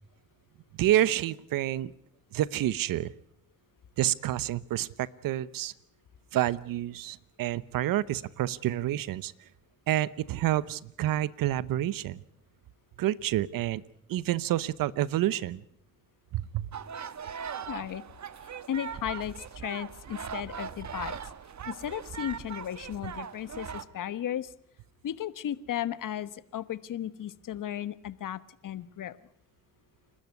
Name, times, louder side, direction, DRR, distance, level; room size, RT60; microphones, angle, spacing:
voice 1, 0.8-1.9 2.3-3.1 4.0-5.7 6.3-9.3 9.9-12.2 13.0-13.8 14.1-15.6 16.3-16.7, right 13 dB, 80° right, 19 dB, 0.9 m, -28 dB
sound 1, 16.7-23.8, right 7 dB, 55° right, 1.5 m, -40 dB
voice 2, 17.7-18.0 18.7-21.2 21.7-24.5 25.0-29.2, left 10 dB, 70° left, 15 dB, 1.3 m, -35 dB
29.0 x 12.5 x 9.5 m, 0.71 s
supercardioid pair, 45°, 33 cm